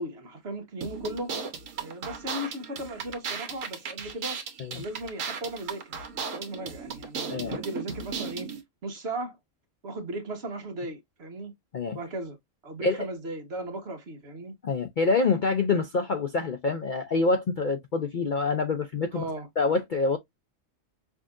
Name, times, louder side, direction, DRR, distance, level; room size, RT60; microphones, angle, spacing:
voice 1, 0.0-1.3 1.8-4.4 4.7-5.9 6.3-8.5 8.8-9.4 9.8-11.5 11.9-12.4 12.6-14.5 19.1-19.5, right 1 dB, 50° right, 1.3 m, -36 dB
sound 1, 0.8-8.6, right 5 dB, 70° right, 1.3 m, -36 dB
voice 2, 14.6-19.2 19.6-20.2, left 4 dB, 55° left, 0.5 m, -26 dB
5.9 x 2.7 x 2.4 m
omnidirectional pair, 1.5 m